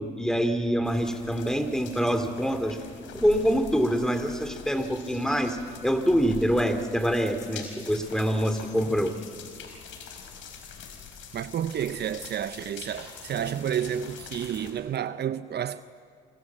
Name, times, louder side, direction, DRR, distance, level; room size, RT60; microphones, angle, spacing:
voice 1, 0.0-2.8 3.1-5.6 5.8-9.2, equal, 5° left, 3.0 m, -25 dB
sound 1, 0.8-14.7, left 6 dB, 75° left, 4.7 m, -44 dB
voice 2, 11.3-15.8, right 9 dB, 55° right, 0.7 m, -30 dB
28.0 x 25.0 x 7.5 m
supercardioid pair, 60°, 20 cm